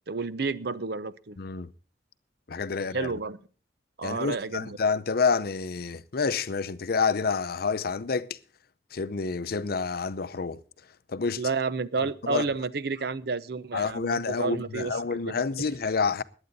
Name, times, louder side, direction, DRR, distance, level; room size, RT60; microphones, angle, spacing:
voice 1, 0.1-1.4 2.8-3.4 4.0-4.8 11.4-15.0 15.2-15.4, right 4 dB, 65° right, 0.7 m, -31 dB
voice 2, 1.4-1.7 2.5-3.1 4.0-8.4 8.9-10.6 11.1-11.4 12.0-12.4 13.7-16.2, left 5 dB, 60° left, 0.7 m, -28 dB
20.5 x 8.9 x 4.1 m
head